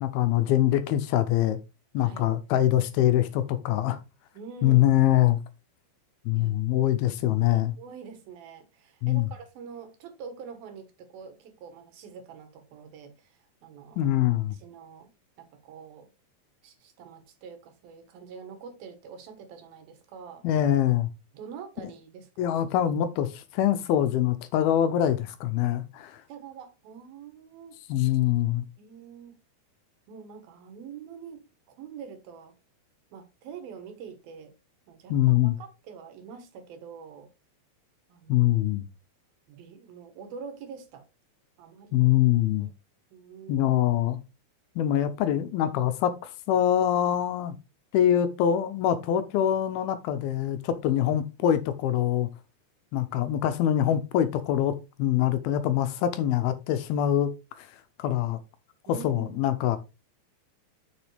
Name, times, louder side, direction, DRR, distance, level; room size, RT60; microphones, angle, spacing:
voice 1, 0.0-1.6 1.9-4.0 4.6-5.4 6.3-7.7 9.0-9.3 14.0-14.6 20.4-21.1 22.4-26.2 27.9-28.7 35.1-35.6 38.3-38.8 41.9-42.7 43.5-44.2 44.8-47.6 47.9-52.3 52.9-57.3 57.6-57.7 58.0-58.4 58.9-59.8, left 11 dB, 80° left, 2.5 m, -24 dB
voice 2, 2.0-2.3 4.3-4.9 6.3-6.5 7.0-7.2 7.8-14.1 14.5-15.1 15.4-16.1 16.6-20.4 21.3-22.6 26.3-27.7 28.8-29.4 30.1-32.5 33.1-34.5 34.9-37.3 38.1-38.7 39.5-41.0 41.6-42.1 42.6-42.7 43.1-43.7 58.9-59.4, right 6 dB, 70° right, 3.1 m, -45 dB
7.1 x 6.9 x 3.3 m
omnidirectional pair, 4.6 m